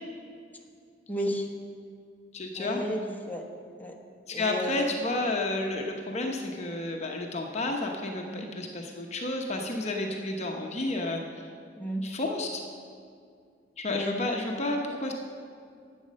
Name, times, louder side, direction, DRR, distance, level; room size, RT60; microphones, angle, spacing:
voice 1, 1.1-1.5 2.6-3.4 3.8-3.9 4.3-4.9 8.2-8.5 11.8-12.0 13.9-14.1, equal, 10° left, 0 dB, 1.1 m, -32 dB
voice 2, 2.3-2.8 4.3-11.2 12.0-12.6 13.8-15.1, left 2 dB, 40° left, 1 dB, 0.9 m, -31 dB
11.5 x 8.3 x 6.3 m, 2.3 s
head